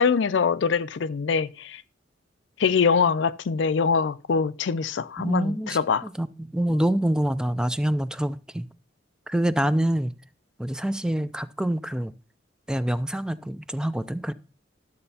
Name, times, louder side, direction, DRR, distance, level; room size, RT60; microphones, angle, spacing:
voice 1, 0.0-1.8 2.6-6.1 6.7-6.8, left 5 dB, 70° left, 0.4 m, -23 dB
voice 2, 5.2-8.7 9.3-10.1 10.6-12.1 12.7-14.3, right 1 dB, 5° right, 0.3 m, -26 dB
12.5 x 7.8 x 2.8 m
head